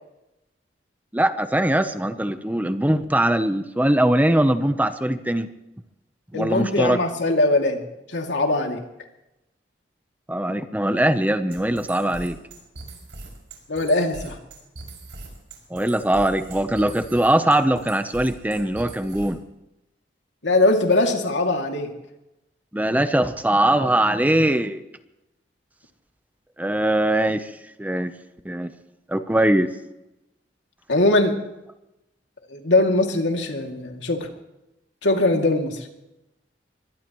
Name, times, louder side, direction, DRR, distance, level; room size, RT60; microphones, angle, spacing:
voice 1, 1.1-5.5 6.3-7.0 10.3-12.4 15.7-19.4 22.7-24.8 26.6-27.5 27.8-28.1 28.4-28.7 29.1-29.7, right 1 dB, 10° right, 10 dB, 0.8 m, -21 dB
voice 2, 6.3-8.8 13.7-14.4 20.4-21.9 30.9-31.3 32.5-34.3 35.0-35.9, left 2 dB, 85° left, 3 dB, 2.6 m, -21 dB
sound 1, 11.5-19.5, right 2 dB, 90° right, 5.9 m, -40 dB
24.0 x 18.5 x 3.1 m, 0.91 s
head